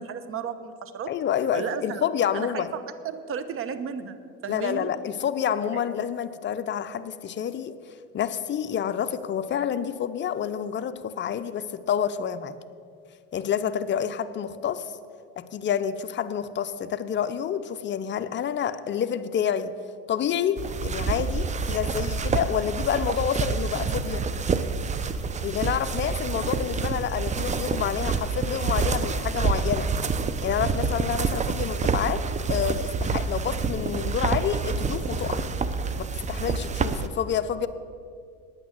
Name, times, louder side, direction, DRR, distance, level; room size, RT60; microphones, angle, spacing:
voice 1, 0.0-1.1 1.5-2.0 2.3-4.2 4.4-4.9 5.6-5.8 30.9-31.0, right 7 dB, 40° right, 11 dB, 0.9 m, -34 dB
voice 2, 1.1-2.7 4.5-7.7 8.1-12.6 13.3-14.9 15.4-19.7 20.1-24.2 25.4-29.9 30.4-32.2 32.5-35.4 36.0-37.7, left 8 dB, 35° left, 10 dB, 0.6 m, -28 dB
sound 1, 20.6-37.1, right 4 dB, 20° right, 0.6 m, -27 dB
9.3 x 8.9 x 7.5 m, 2.3 s
supercardioid pair, 105°, 32 cm